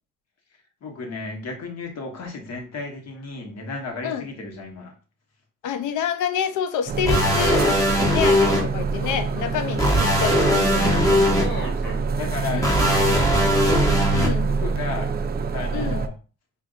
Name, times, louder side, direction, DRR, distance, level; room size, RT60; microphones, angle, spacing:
voice 1, 0.8-4.9 11.4-13.5 14.5-15.1 15.5-16.1, left 4 dB, 55° left, 1.2 m, -34 dB
voice 2, 5.6-7.7 8.1-11.6 12.5-12.9 14.1-14.5 15.7-16.0, left 8 dB, 80° left, 0.6 m, -28 dB
sound 1, 6.9-16.1, right 4 dB, 35° right, 0.4 m, -26 dB
sound 2, 7.1-8.6 9.8-11.4 12.6-14.3, equal, 10° left, 1.2 m, -20 dB
sound 3, 8.3-12.0, right 1 dB, 35° left, 1.4 m, -35 dB
5.1 x 2.5 x 2.5 m
cardioid pair, 90°, 30 cm